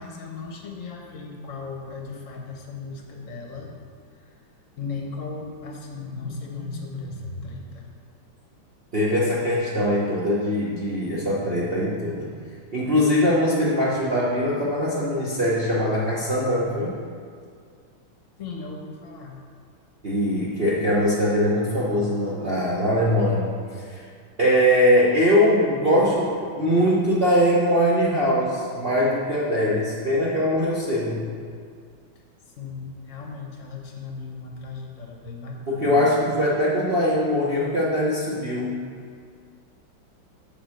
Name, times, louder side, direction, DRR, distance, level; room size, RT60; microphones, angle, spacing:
voice 1, 0.0-3.7 4.1-4.3 4.8-7.9 18.4-19.4 32.5-36.2, left 4 dB, 50° left, 1 dB, 1.1 m, -36 dB
voice 2, 8.9-12.3 12.7-16.9 20.0-23.5 23.9-24.0 24.4-31.2 35.7-38.8, equal, 45° right, -7 dB, 0.8 m, -22 dB
7.1 x 4.7 x 6.3 m, 2.1 s
omnidirectional pair, 2.2 m